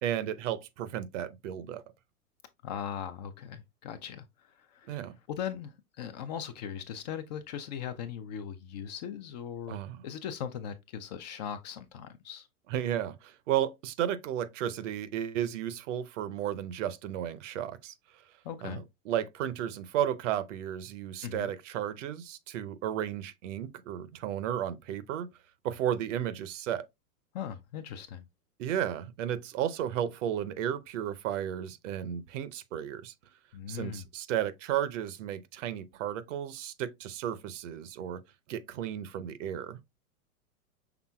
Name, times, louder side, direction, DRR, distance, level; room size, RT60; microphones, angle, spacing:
voice 1, 0.0-1.8 4.9-5.2 9.7-10.0 12.7-17.9 18.6-25.3 25.6-26.8 28.6-33.1 33.7-38.2 38.5-39.8, right 10 dB, 55° right, 0.7 m, -33 dB
voice 2, 2.6-9.8 10.0-12.5 18.4-18.8 21.2-21.5 27.3-28.3 33.5-34.1, left 8 dB, 30° left, 0.4 m, -39 dB
5.9 x 3.4 x 2.2 m
hypercardioid pair, 110°, 44 cm